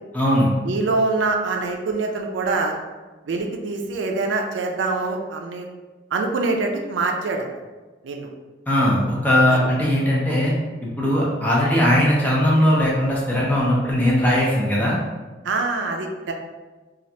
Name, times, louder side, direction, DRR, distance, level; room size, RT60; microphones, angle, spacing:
voice 1, 0.1-0.5 8.7-10.5 10.8-15.0, left 1 dB, 10° left, -5 dB, 0.6 m, -19 dB
voice 2, 0.6-2.8 3.3-5.7 6.1-7.5 8.0-8.3 9.5-9.6 15.4-16.3, right 3 dB, 85° right, 3 dB, 0.4 m, -24 dB
3.1 x 2.4 x 2.7 m, 1.3 s
head